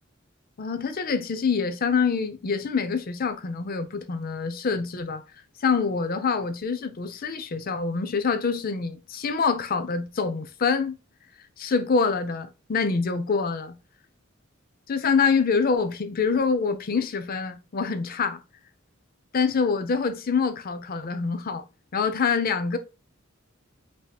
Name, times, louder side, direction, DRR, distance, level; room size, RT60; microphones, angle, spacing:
voice 1, 0.6-5.2 5.6-11.0 11.6-13.8 14.9-18.4 19.3-21.6 21.9-22.8, left 5 dB, 45° left, 0.5 m, -25 dB
5.3 x 2.8 x 2.2 m
head